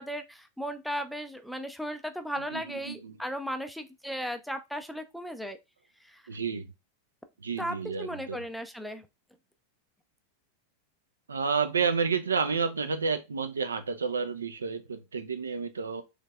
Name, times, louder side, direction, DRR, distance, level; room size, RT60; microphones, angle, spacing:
voice 1, 0.0-5.6 6.0-6.2 7.6-9.1, equal, ahead, 0.4 m, -36 dB
voice 2, 2.5-3.2 6.3-6.7 7.4-8.4 11.3-16.0, right 5 dB, 70° right, 0.4 m, -30 dB
3.3 x 3.1 x 2.2 m
figure-of-eight pair, 90°, 0 cm